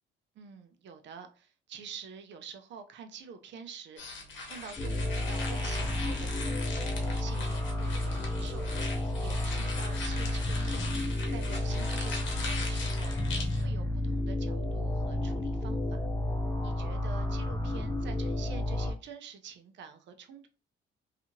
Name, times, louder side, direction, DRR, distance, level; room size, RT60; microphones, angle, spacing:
voice 1, 0.3-6.7 7.2-8.7 9.2-13.1 13.6-16.1 16.6-20.5, right 6 dB, 65° right, 0.5 m, -47 dB
sound 1, 4.0-13.6, left 3 dB, 70° left, 0.9 m, -41 dB
sound 2, 4.8-18.9, left 1 dB, 15° left, 0.5 m, -31 dB
2.7 x 2.4 x 2.6 m
cardioid pair, 90°, 20 cm